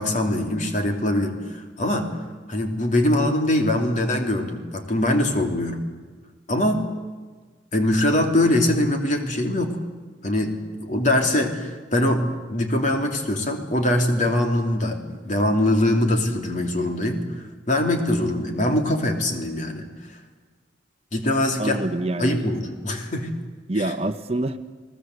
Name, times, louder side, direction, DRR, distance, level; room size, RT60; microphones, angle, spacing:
voice 1, 0.0-2.1 2.5-5.8 6.5-6.8 7.7-9.8 10.2-10.5 10.8-19.9 21.1-21.9 22.2-23.3 23.7-23.9, left 1 dB, 40° left, 3 dB, 3.3 m, -23 dB
voice 2, 21.6-22.5 23.7-24.6, right 2 dB, 35° right, 9 dB, 1.0 m, -26 dB
30.0 x 19.5 x 8.0 m, 1.4 s
head